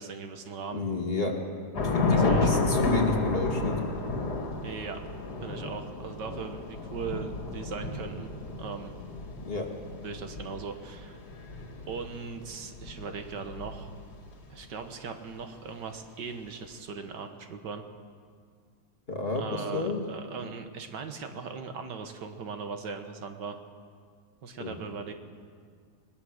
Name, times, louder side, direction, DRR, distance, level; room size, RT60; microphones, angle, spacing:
voice 1, 0.0-0.8 2.1-2.7 4.6-5.0 5.4-8.3 8.6-8.9 10.0-11.2 11.9-13.9 14.5-17.8 19.3-23.6 24.4-25.1, right 5 dB, 80° right, 6 dB, 1.9 m, -39 dB
voice 2, 0.7-1.3 1.8-3.8 9.5-9.7 19.1-20.0 24.6-24.8, left 3 dB, 35° left, 1 dB, 2.4 m, -30 dB
Thunder / Rain, 1.7-14.3, left 3 dB, 65° left, 2.5 m, -31 dB
21.0 x 20.0 x 6.5 m, 2.1 s
omnidirectional pair, 1.9 m